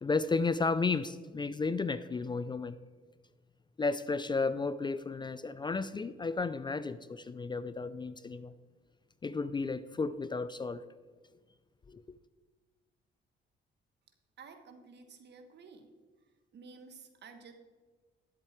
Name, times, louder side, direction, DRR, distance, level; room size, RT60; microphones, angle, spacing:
voice 1, 0.0-2.8 3.8-8.5 9.2-10.8 11.9-12.0, left 4 dB, 25° left, 15 dB, 0.4 m, -33 dB
voice 2, 14.4-15.9 16.5-17.5, right 5 dB, 60° right, 7 dB, 1.4 m, -52 dB
11.0 x 7.7 x 4.4 m, 1.4 s
cardioid pair, 90°, 20 cm